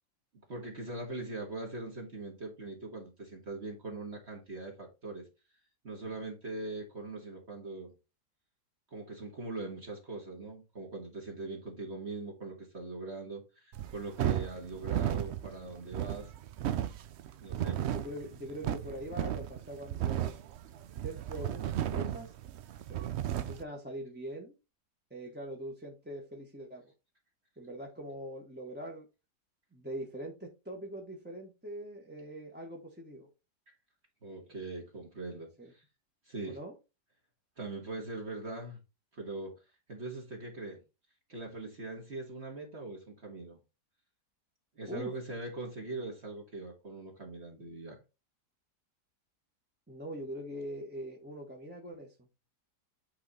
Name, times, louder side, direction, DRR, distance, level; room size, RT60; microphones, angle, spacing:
voice 1, 0.5-5.3 5.8-7.9 8.9-16.3 17.4-17.8 33.7-33.8 34.2-35.8 36.2-36.6 37.6-38.8 39.1-39.5 39.9-40.8 41.3-43.6 44.7-48.0, right 2 dB, 40° right, 1.7 m, -41 dB
sound 1, 13.7-23.6, right 11 dB, 75° right, 0.6 m, -34 dB
voice 2, 17.5-20.3 20.9-22.3 22.9-24.5 25.1-26.9 27.6-29.1 29.7-33.3 35.6-35.7 36.4-36.7 44.9-45.1 49.9-52.3, right 1 dB, 5° right, 1.0 m, -43 dB
8.5 x 3.8 x 4.1 m
omnidirectional pair, 1.8 m